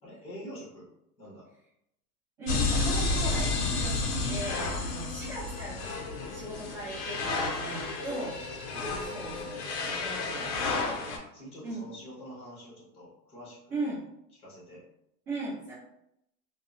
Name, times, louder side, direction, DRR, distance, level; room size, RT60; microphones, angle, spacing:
voice 1, 0.0-0.9 1.2-1.4 7.9-8.2 8.7-9.5 9.9-11.0 11.3-13.8 14.4-14.8, equal, 10° left, -6 dB, 0.8 m, -45 dB
voice 2, 2.4-6.0 6.3-8.3 9.0-10.5 10.9-11.0 11.6-11.9 13.7-14.0 15.3-15.7, right 2 dB, 25° right, -11 dB, 0.8 m, -38 dB
sound 1, 2.5-11.2, left 3 dB, 45° left, 0.5 m, -31 dB
2.7 x 2.1 x 2.4 m, 0.80 s
supercardioid pair, 150°, 48 cm